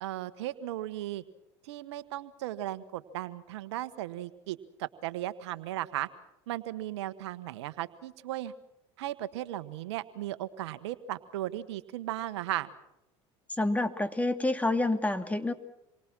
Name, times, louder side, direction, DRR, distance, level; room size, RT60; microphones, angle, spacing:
voice 1, 0.0-1.2 1.6-6.1 6.5-8.5 9.0-12.7, right 14 dB, 85° right, 13 dB, 1.3 m, -36 dB
voice 2, 13.6-15.5, left 2 dB, 10° left, 9 dB, 2.5 m, -28 dB
28.0 x 23.5 x 6.2 m, 0.87 s
hypercardioid pair, 85°, 14 cm